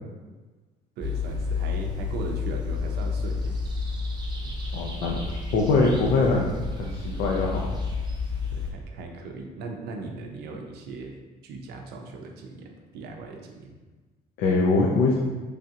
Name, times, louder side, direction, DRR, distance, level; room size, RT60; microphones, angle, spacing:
sound 1, 1.0-8.7, left 4 dB, 25° right, 0.5 m, -30 dB
voice 1, 1.0-3.7 8.5-11.1 11.4-13.7, right 3 dB, 75° right, 2 dB, 0.5 m, -38 dB
voice 2, 4.7-5.1 5.5-6.5 6.8-7.6 14.4-15.1, left 3 dB, 80° left, -3 dB, 0.5 m, -22 dB
3.2 x 2.4 x 2.7 m, 1.3 s
cardioid pair, 110°, 17 cm